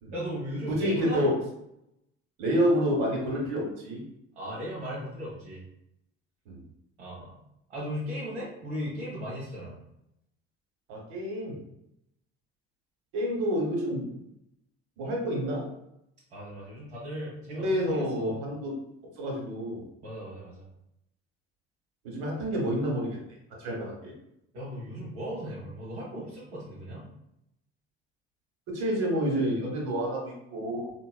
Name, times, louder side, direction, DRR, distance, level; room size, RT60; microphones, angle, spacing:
voice 1, 0.1-1.3 4.4-5.6 7.0-7.3 7.7-9.8 16.3-18.3 20.0-20.6 24.5-27.0, equal, 85° right, -7 dB, 0.7 m, -37 dB
voice 2, 0.7-1.3 2.4-4.0 6.5-6.6 10.9-11.6 13.1-14.1 15.0-15.7 17.5-18.7 19.2-19.8 22.0-23.2 23.6-24.1 28.7-30.9, equal, 65° right, -1 dB, 1.1 m, -28 dB
3.8 x 2.2 x 2.2 m, 0.81 s
hypercardioid pair, 55°, 33 cm